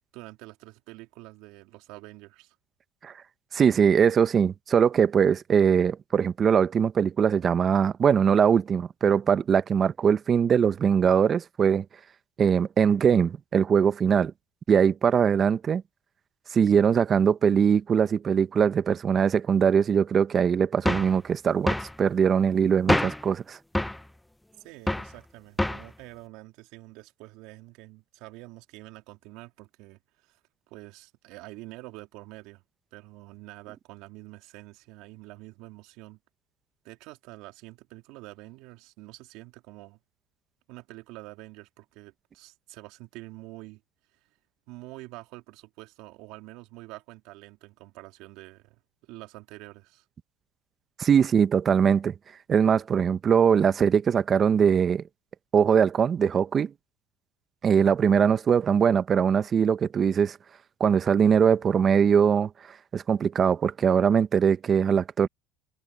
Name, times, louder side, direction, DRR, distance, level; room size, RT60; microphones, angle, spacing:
voice 1, 0.1-2.5 24.6-30.4 30.7-32.6 32.9-36.2 36.8-40.0 40.7-43.8 44.7-50.0, right 21 dB, 70° right, 3.1 m, -46 dB
voice 2, 3.5-11.8 12.4-14.3 14.7-15.8 16.5-23.6 51.0-52.1 52.5-55.0 55.5-56.7 57.6-60.4 60.8-62.5 62.9-65.3, right 7 dB, 40° right, 1.1 m, -21 dB
sound 1, 20.8-21.2 21.7-21.9 22.9-23.3 23.7-24.0 24.9-25.1 25.6-25.9, left 1 dB, 5° left, 1.0 m, -25 dB
supercardioid pair, 90°, 0 cm